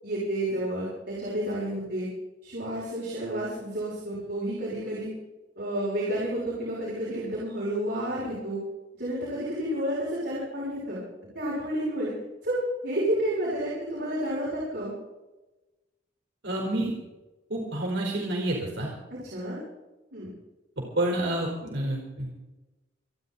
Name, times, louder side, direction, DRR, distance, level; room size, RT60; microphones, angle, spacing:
voice 1, 0.0-2.1 2.4-5.1 5.6-8.6 9.0-11.0 11.3-12.1 12.4-14.9 19.1-19.6 20.1-20.3, right 1 dB, 60° right, -7 dB, 7.0 m, -30 dB
voice 2, 16.4-16.9 17.5-18.9 21.0-22.4, right 1 dB, 80° right, -2 dB, 4.3 m, -29 dB
29.0 x 10.5 x 4.2 m, 1.1 s
head